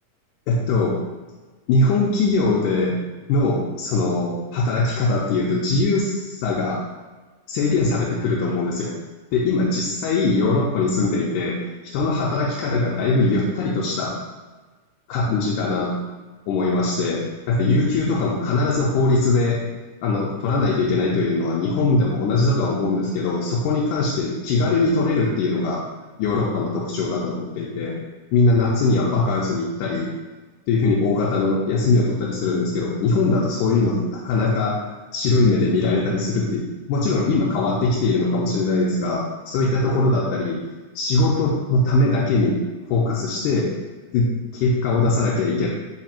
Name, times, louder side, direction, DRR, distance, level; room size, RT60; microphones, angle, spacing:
voice 1, 0.5-1.0 1.7-3.0 3.3-6.8 7.5-9.0 9.3-11.6 11.9-14.1 15.1-16.0 16.5-19.6 20.0-25.8 26.2-28.0 28.3-30.1 30.7-40.6 41.0-42.6 42.9-43.7 44.1-45.7, left 3 dB, 85° left, -4 dB, 2.0 m, -21 dB
5.1 x 2.4 x 4.2 m, 1.2 s
omnidirectional pair, 3.6 m